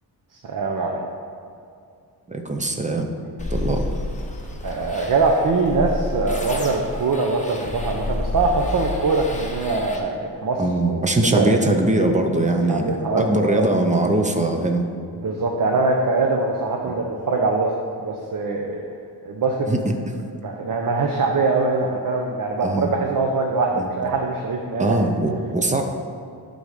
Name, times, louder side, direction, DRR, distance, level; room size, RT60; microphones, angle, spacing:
voice 1, 0.4-1.0 4.6-11.0 11.3-11.6 12.4-13.7 15.2-17.7 18.0-18.8 19.2-19.7 20.4-25.0, right 3 dB, 55° right, 1 dB, 0.7 m, -23 dB
voice 2, 2.3-3.1 3.5-3.9 10.6-12.9 13.2-14.8 19.7-19.9 22.6-22.9 23.8-23.9 24.8-25.8, right 2 dB, 20° right, 4 dB, 0.5 m, -21 dB
sound 1, 3.4-10.0, left 2 dB, 20° left, 0.7 m, -30 dB
11.0 x 4.0 x 5.0 m, 2.4 s
wide cardioid pair, 165°, 40 cm